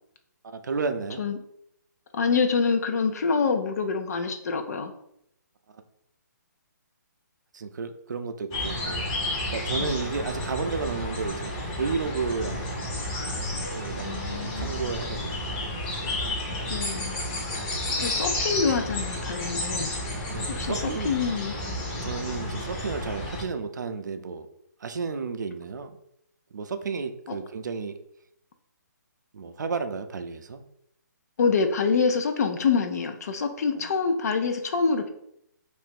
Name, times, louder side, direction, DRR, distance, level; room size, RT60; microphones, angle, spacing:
voice 1, 0.4-1.2 7.5-9.0 9.5-11.5 11.8-13.0 13.7-14.2 14.6-15.6 17.7-17.8 20.2-21.1 22.0-24.5 24.8-26.0 26.5-28.0 29.3-30.6 33.7-33.9, right 4 dB, 70° right, 8 dB, 0.5 m, -32 dB
voice 2, 2.1-4.9 9.8-9.9 14.0-14.8 16.7-17.2 18.0-19.9 20.5-21.6 31.4-35.1, left 5 dB, 55° left, 6 dB, 0.5 m, -26 dB
sound 1, 8.5-23.4, left 1 dB, 25° left, 0.7 m, -31 dB
2.8 x 2.5 x 3.6 m, 0.75 s
hypercardioid pair, 150°, 10 cm